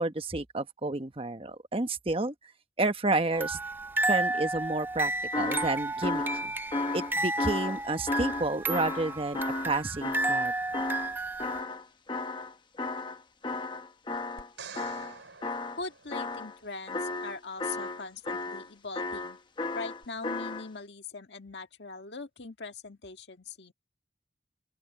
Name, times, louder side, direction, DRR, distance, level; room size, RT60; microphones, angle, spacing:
voice 1, 0.0-2.3 2.8-3.6 4.1-6.5 6.9-10.5, right 2 dB, 30° right, 1.1 m, -30 dB
sound 1, 3.3-11.6, right 2 dB, 10° right, 0.4 m, -32 dB
sound 2, 5.3-11.1 11.4-14.5 14.8-15.8 16.1-16.6 16.9-18.7 18.9-20.7, left 3 dB, 25° left, 0.9 m, -34 dB
sound 3, 14.4-16.7 20.0-20.1, right 5 dB, 85° right, 4.6 m, -48 dB
voice 2, 15.8-19.4 19.7-23.7, left 4 dB, 65° left, 1.7 m, -41 dB
open air
head